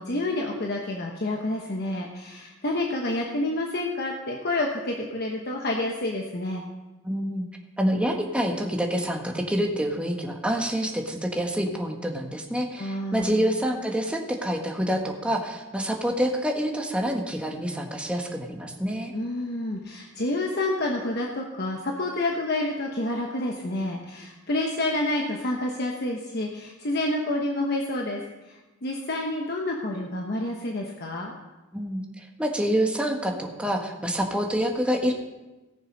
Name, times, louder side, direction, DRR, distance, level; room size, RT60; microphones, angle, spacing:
voice 1, 0.0-6.6 12.8-13.4 19.1-28.2 28.5-31.3, left 2 dB, 55° left, 0 dB, 1.1 m, -29 dB
voice 2, 7.0-7.4 7.8-19.1 31.7-35.1, equal, 5° right, 1 dB, 1.4 m, -27 dB
17.5 x 6.8 x 5.3 m, 1.1 s
head